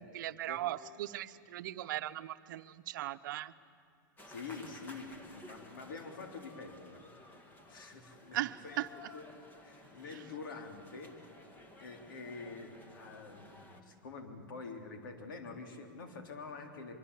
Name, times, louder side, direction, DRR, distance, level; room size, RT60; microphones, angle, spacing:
voice 1, 0.0-3.5 8.3-8.9 10.1-10.2, right 14 dB, 65° right, 12 dB, 0.9 m, -38 dB
sound 1, 4.2-13.8, left 1 dB, 15° left, 2.2 m, -55 dB
voice 2, 4.3-7.0 7.7-8.4 8.6-8.8 9.1-9.3 9.6-11.4 11.8-17.0, left 4 dB, 80° left, 4 dB, 3.6 m, -46 dB
24.0 x 22.5 x 8.4 m, 2.5 s
hypercardioid pair, 135°, 11 cm